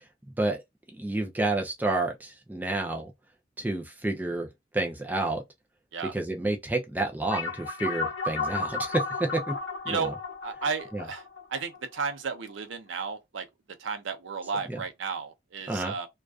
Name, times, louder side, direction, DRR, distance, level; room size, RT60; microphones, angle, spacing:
voice 1, 1.0-3.1 3.6-4.5 4.7-5.4 6.1-9.5 9.9-10.1 10.9-11.0 14.7-14.8 15.7-15.9, right 2 dB, 10° right, 0.4 m, -29 dB
sound 1, 7.3-12.1, left 3 dB, 90° left, 0.7 m, -33 dB
voice 2, 10.4-13.5 13.8-16.1, right 5 dB, 85° right, 0.5 m, -33 dB
2.3 x 2.3 x 2.3 m
head